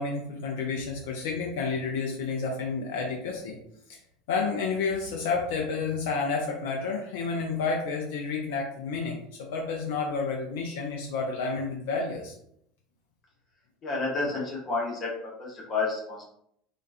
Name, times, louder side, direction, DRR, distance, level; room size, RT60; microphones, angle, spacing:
voice 1, 0.0-3.6 3.9-4.0 4.3-9.2 9.5-12.3, left 4 dB, 60° left, 0 dB, 0.3 m, -30 dB
voice 2, 13.8-15.1 15.4-16.2, left 3 dB, 35° left, -3 dB, 0.8 m, -30 dB
2.3 x 2.2 x 2.4 m, 0.71 s
figure-of-eight pair, 70°, 0 cm